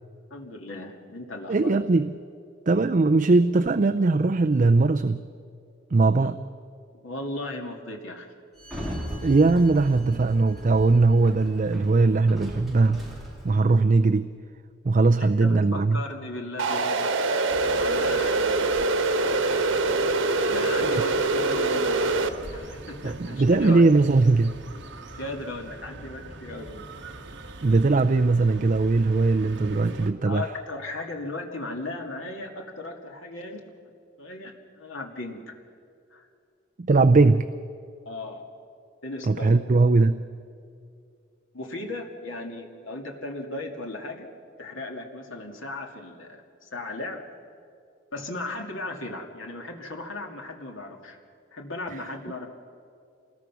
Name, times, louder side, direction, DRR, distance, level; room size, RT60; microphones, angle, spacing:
voice 1, 0.3-1.8 7.0-8.3 15.2-17.2 17.7-18.7 20.4-22.2 22.5-23.9 25.2-27.0 30.3-33.7 34.2-35.4 36.1-36.3 38.1-38.4 39.0-39.6 41.5-44.3 44.6-47.2 48.1-51.2 51.5-52.5, left 2 dB, 90° left, 2 dB, 2.4 m, -36 dB
voice 2, 1.5-2.1 2.7-5.2 5.9-6.4 9.2-13.1 13.4-14.3 14.8-16.0 23.0-24.6 27.6-30.5 36.8-37.5 39.3-40.2 51.9-52.0, right 3 dB, 40° right, 9 dB, 0.4 m, -20 dB
Sliding door, 8.6-13.8, equal, ahead, 3.7 m, -38 dB
sound 1, 16.6-22.3, right 3 dB, 90° right, 1.3 m, -24 dB
sound 2, 17.5-30.1, right 2 dB, 60° right, 1.5 m, -42 dB
27.0 x 20.5 x 6.1 m, 2.4 s
head